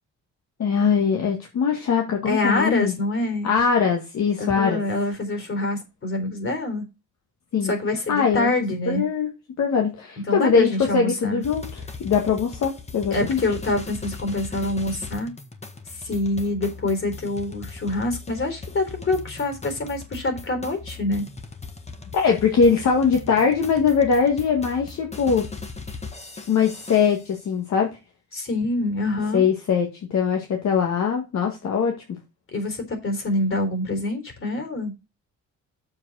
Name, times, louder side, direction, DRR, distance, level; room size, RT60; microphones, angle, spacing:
voice 1, 0.6-2.9 3.4-4.8 7.5-7.7 8.1-8.5 8.9-9.3 9.6-13.4 22.1-25.5 26.5-28.0 29.3-31.9, left 6 dB, 65° left, 1.9 m, -21 dB
voice 2, 2.3-3.5 4.4-6.8 7.6-9.0 10.3-11.4 13.1-15.3 16.0-21.2 28.3-29.4 32.5-34.9, left 2 dB, 45° left, 3.8 m, -26 dB
sound 1, 11.4-27.3, left 4 dB, 20° left, 1.6 m, -39 dB
7.4 x 4.9 x 6.3 m
cardioid pair, 90°, 30 cm